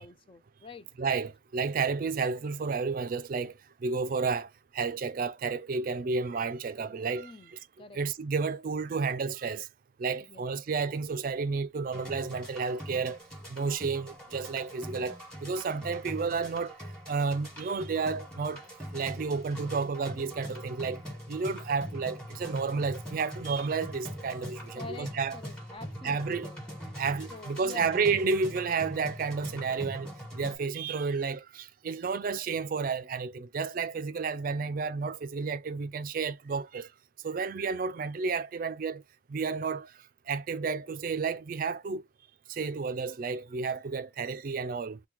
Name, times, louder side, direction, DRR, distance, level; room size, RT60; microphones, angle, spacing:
voice 1, 0.0-0.9 7.2-8.0 10.2-10.4 24.7-27.0 27.3-28.0, left 4 dB, 25° left, 0.3 m, -47 dB
voice 2, 1.0-3.5 3.8-7.6 7.9-9.7 10.0-13.2 13.5-18.6 18.9-21.0 21.3-25.4 26.0-26.5 27.0-36.9 37.2-39.0 39.3-39.9 40.3-42.0 42.5-45.0, right 4 dB, 45° right, 0.4 m, -31 dB
sound 1, 11.9-30.6, equal, 5° left, 1.3 m, -42 dB
2.9 x 2.2 x 3.6 m
head